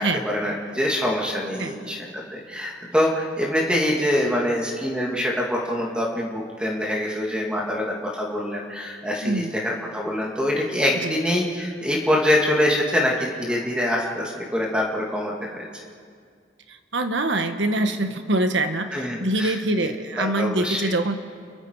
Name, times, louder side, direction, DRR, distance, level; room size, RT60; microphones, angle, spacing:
voice 1, 0.0-15.6 18.9-19.6 19.8-19.9 20.2-20.9, left 1 dB, 5° right, -2 dB, 2.6 m, -25 dB
voice 2, 9.2-9.5 11.0-11.1 16.7-21.1, right 2 dB, 80° right, 7 dB, 1.5 m, -24 dB
29.5 x 22.5 x 4.8 m, 2.1 s
head